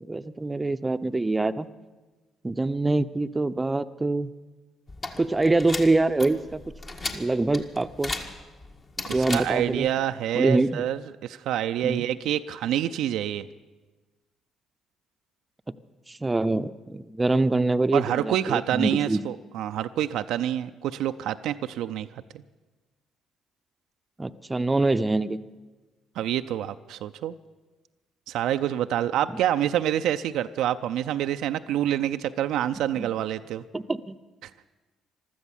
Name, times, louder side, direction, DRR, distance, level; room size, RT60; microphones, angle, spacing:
voice 1, 0.1-1.7 2.4-4.3 5.2-6.6 7.1-8.1 9.1-9.9 10.3-10.8 11.8-12.0 16.1-19.2 24.2-25.4 33.0-33.1 33.7-34.2, right 2 dB, 20° right, 11 dB, 0.6 m, -25 dB
sound 1, 4.9-9.9, left 3 dB, 40° left, 1.6 m, -36 dB
voice 2, 9.1-13.5 17.9-22.1 22.3-22.4 26.2-27.4 28.3-33.6 34.4-34.5, right 11 dB, 70° right, 9 dB, 0.4 m, -27 dB
15.0 x 12.5 x 7.3 m, 1.2 s
hypercardioid pair, 55°, 0 cm